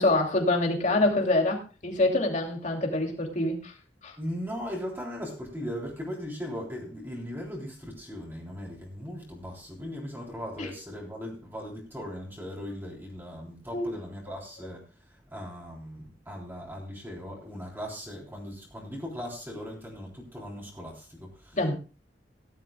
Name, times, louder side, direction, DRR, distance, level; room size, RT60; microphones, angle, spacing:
voice 1, 0.0-3.7 4.0-4.1 10.6-10.7 13.7-13.9 21.5-21.7, left 2 dB, 45° left, 2 dB, 2.8 m, -25 dB
voice 2, 4.2-14.8 15.3-21.7, equal, 15° right, -2 dB, 3.6 m, -38 dB
17.5 x 12.0 x 2.3 m, 0.33 s
head